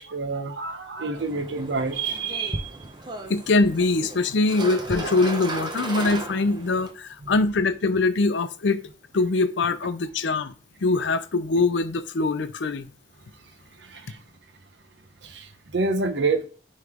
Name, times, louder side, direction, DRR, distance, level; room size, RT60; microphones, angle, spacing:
voice 1, 0.0-2.8 7.2-7.3 13.8-14.2 15.2-16.5, right 3 dB, 85° right, 0.8 m, -28 dB
sound 1, 1.1-6.9, right 2 dB, 25° right, 0.7 m, -35 dB
voice 2, 3.3-8.8 9.1-10.5 10.8-12.9, left 3 dB, 90° left, 0.6 m, -23 dB
9.4 x 3.2 x 3.6 m
head